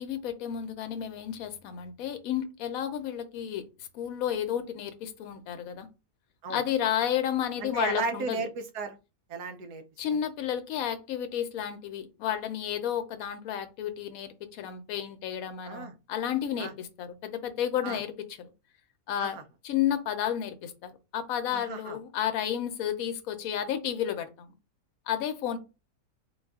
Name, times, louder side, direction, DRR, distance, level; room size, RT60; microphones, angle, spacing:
voice 1, 0.0-3.7 3.9-5.9 6.5-8.4 10.0-18.5 19.1-19.4 19.6-24.5 25.1-25.6, left 10 dB, 70° left, 1.0 m, -32 dB
voice 2, 7.6-9.0 9.3-9.8 15.6-15.9 16.6-16.7 17.8-18.0 19.2-19.4 21.5-22.0, right 4 dB, 85° right, 1.3 m, -34 dB
3.9 x 2.3 x 3.5 m
omnidirectional pair, 1.7 m